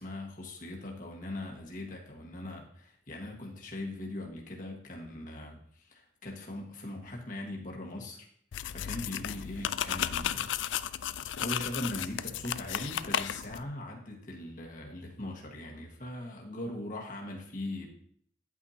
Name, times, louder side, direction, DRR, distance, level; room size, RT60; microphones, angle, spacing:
voice 1, 0.0-8.3 8.7-10.5 11.4-17.9, left 1 dB, 45° left, -1 dB, 1.6 m, -40 dB
sound 1, 8.5-13.6, left 10 dB, 85° left, 0.4 m, -34 dB
10.0 x 8.6 x 2.8 m, 0.64 s
head